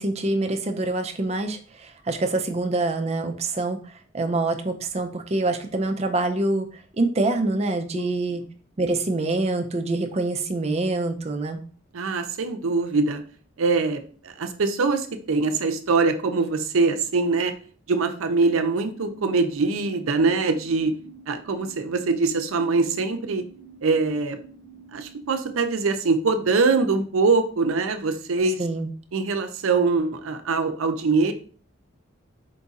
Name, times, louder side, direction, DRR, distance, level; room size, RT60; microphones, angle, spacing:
voice 1, 0.0-8.4 8.8-11.6 28.6-28.9, right 2 dB, 30° right, 6 dB, 0.4 m, -25 dB
voice 2, 11.9-13.2 13.6-17.5 17.9-20.9 21.3-23.4 23.8-24.4 24.9-28.6 29.1-31.3, right 4 dB, 85° right, 7 dB, 0.5 m, -23 dB
sound 1, 18.9-25.8, right 5 dB, 55° left, 1.3 m, -48 dB
4.5 x 2.4 x 4.0 m, 0.43 s
head